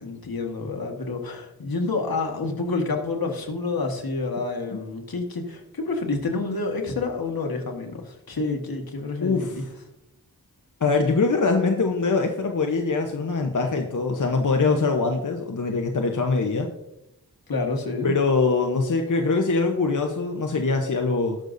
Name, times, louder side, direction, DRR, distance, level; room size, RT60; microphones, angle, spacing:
voice 1, 0.0-9.7 17.5-18.1, left 3 dB, 75° left, 3 dB, 1.7 m, -28 dB
voice 2, 9.2-9.5 10.8-16.7 18.0-21.4, left 4 dB, 55° left, 3 dB, 1.0 m, -23 dB
19.5 x 6.5 x 2.7 m, 0.89 s
wide cardioid pair, 60°, 36 cm